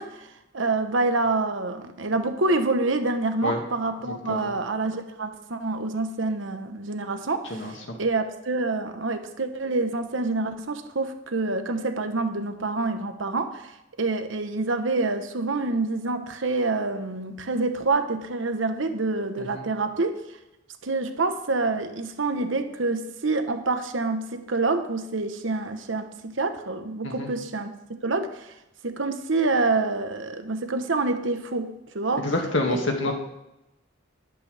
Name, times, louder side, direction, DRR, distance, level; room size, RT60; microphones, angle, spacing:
voice 1, 0.0-20.2 20.8-27.7 28.0-28.5 28.8-32.2 32.7-32.8, right 3 dB, 85° right, 7 dB, 1.1 m, -27 dB
voice 2, 7.5-8.0 19.4-19.6 27.0-27.3 32.2-33.1, left 2 dB, 75° left, 2 dB, 2.2 m, -27 dB
12.5 x 11.5 x 3.5 m, 0.91 s
head